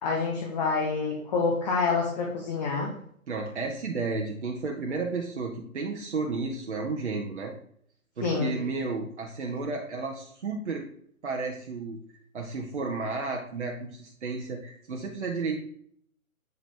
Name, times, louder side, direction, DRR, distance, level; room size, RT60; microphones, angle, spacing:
voice 1, 0.0-2.9 8.2-8.5, left 4 dB, 30° left, 0 dB, 1.1 m, -27 dB
voice 2, 3.3-7.5 8.2-10.9 11.2-12.0 12.3-15.6, right 4 dB, 55° right, 1 dB, 1.0 m, -32 dB
7.9 x 4.9 x 3.4 m, 0.65 s
figure-of-eight pair, 135°, 42 cm